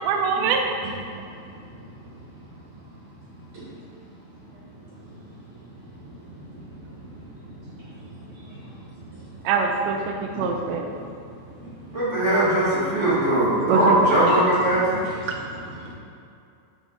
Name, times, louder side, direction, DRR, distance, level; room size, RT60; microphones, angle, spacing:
voice 1, 0.0-0.7 9.5-10.8 13.7-14.3, right 5 dB, 75° right, 2 dB, 2.5 m, -23 dB
voice 2, 7.4-7.8 8.1-8.6 10.3-10.5 14.3-14.4 15.0-15.9, equal, 60° right, -7 dB, 2.1 m, -39 dB
voice 3, 11.9-15.0, right 1 dB, 25° right, -9 dB, 1.9 m, -20 dB
10.5 x 7.6 x 4.1 m, 2.4 s
omnidirectional pair, 4.9 m